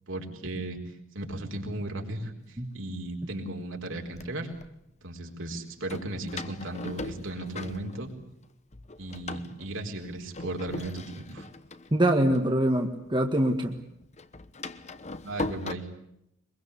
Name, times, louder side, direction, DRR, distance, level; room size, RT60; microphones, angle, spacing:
voice 1, 0.1-0.8 1.1-4.5 5.0-8.1 9.0-11.5 15.2-15.9, right 2 dB, 70° right, 2 dB, 4.3 m, -36 dB
Door, 2.7-2.8 3.6-4.7 5.9-8.4 8.7-13.2 13.5-15.7, left 2 dB, 35° left, 1.2 m, -40 dB
voice 2, 11.9-13.8, right 1 dB, 25° right, 3 dB, 1.7 m, -24 dB
23.5 x 22.5 x 8.4 m, 0.79 s
head